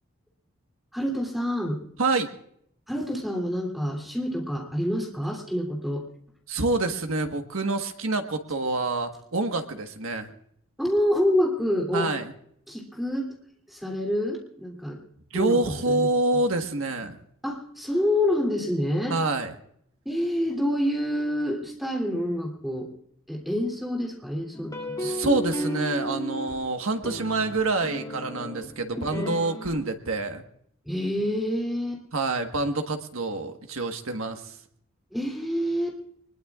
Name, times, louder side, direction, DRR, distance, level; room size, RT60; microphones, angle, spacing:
voice 1, 0.9-1.8 2.9-6.0 10.8-12.1 12.7-13.3 13.7-15.0 15.3-16.1 17.4-19.2 20.0-22.9 23.3-25.1 28.9-29.3 30.8-32.0 35.1-35.9, left 1 dB, ahead, 0 dB, 3.0 m, -27 dB
voice 2, 6.5-10.3 11.9-12.3 15.3-17.2 19.1-19.5 25.0-30.4 32.1-34.6, right 2 dB, 90° right, 5 dB, 1.5 m, -27 dB
sound 1, 24.5-26.6 27.0-29.7, equal, 20° left, 2.9 m, -33 dB
23.5 x 21.0 x 2.4 m, 0.69 s
head